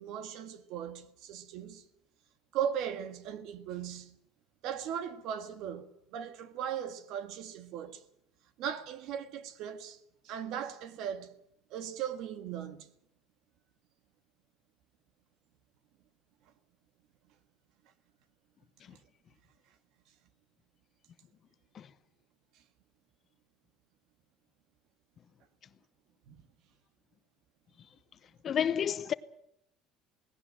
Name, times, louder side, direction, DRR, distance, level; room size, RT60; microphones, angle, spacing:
voice 1, 0.0-1.8 2.5-4.2 4.6-5.9 6.1-8.0 8.6-10.0 10.2-11.3 11.7-12.9 26.3-26.4, right 9 dB, 60° right, 1.8 m, -38 dB
voice 2, 28.4-29.1, left 8 dB, 35° left, 0.8 m, -30 dB
18.5 x 17.5 x 8.8 m
cardioid pair, 145°, 0 cm